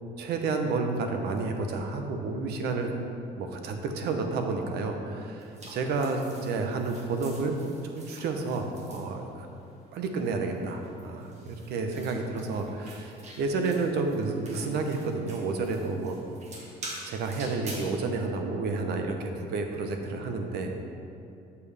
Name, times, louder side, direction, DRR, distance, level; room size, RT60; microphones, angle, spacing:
voice 1, 0.2-2.9 3.4-7.6 7.8-9.5 9.9-16.2 17.0-20.7, right 3 dB, 75° right, 4 dB, 0.8 m, -30 dB
sound 1, 5.4-9.7 10.4-18.0, right 1 dB, 40° right, 1.5 m, -47 dB
6.9 x 6.9 x 3.4 m, 2.6 s
cardioid pair, 110°, 17 cm